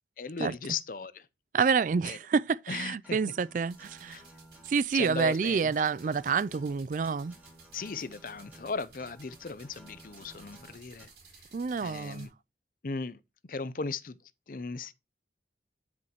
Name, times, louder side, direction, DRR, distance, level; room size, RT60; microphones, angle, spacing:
voice 1, 0.2-1.3 2.0-2.2 2.7-3.2 4.1-4.2 4.9-5.7 7.7-11.1 11.8-12.3 12.8-13.2 13.5-14.2 14.5-14.9, left 4 dB, 50° left, 0.6 m, -37 dB
voice 2, 1.5-4.2 4.7-7.3 11.5-12.3, right 5 dB, 45° right, 0.3 m, -28 dB
Acoustic guitar, 3.0-11.0, right 1 dB, 10° right, 4.1 m, -55 dB
sound 1, 3.7-12.3, right 5 dB, 65° right, 4.1 m, -57 dB
10.0 x 6.2 x 2.9 m
head